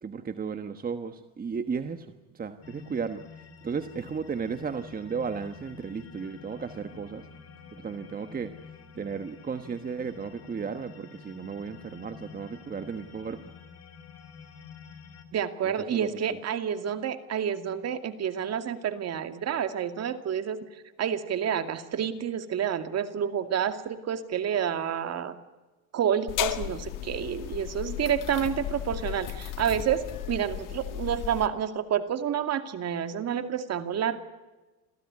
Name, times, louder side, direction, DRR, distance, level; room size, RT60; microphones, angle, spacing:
voice 1, 0.0-3.2 3.6-7.3 7.7-8.5 8.9-13.5 15.6-16.4, right 6 dB, 25° right, 10 dB, 1.3 m, -35 dB
sound 1, 2.6-15.2, left 6 dB, 45° left, 4.0 m, -49 dB
voice 2, 15.3-20.6 21.0-25.3 25.9-34.2, right 8 dB, 50° right, 9 dB, 2.3 m, -29 dB
sound 2, 26.3-31.5, left 13 dB, 70° left, 1.9 m, -35 dB
27.0 x 16.0 x 9.7 m, 1.2 s
cardioid pair, 110°, 33 cm